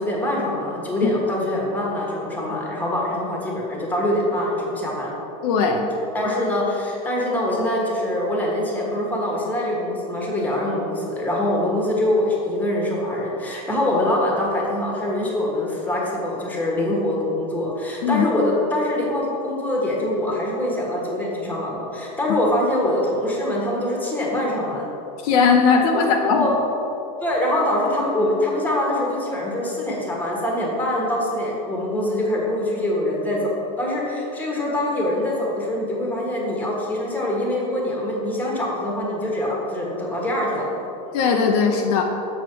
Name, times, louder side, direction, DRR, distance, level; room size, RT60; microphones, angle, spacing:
voice 1, 0.0-5.1 6.1-24.8 26.0-26.5 27.2-40.8, left 1 dB, 10° left, -3 dB, 1.6 m, -24 dB
voice 2, 5.4-5.9 18.0-18.3 25.2-26.5 41.1-42.0, left 5 dB, 60° left, 2 dB, 0.8 m, -18 dB
6.5 x 6.4 x 4.6 m, 2.9 s
supercardioid pair, 130°, 21 cm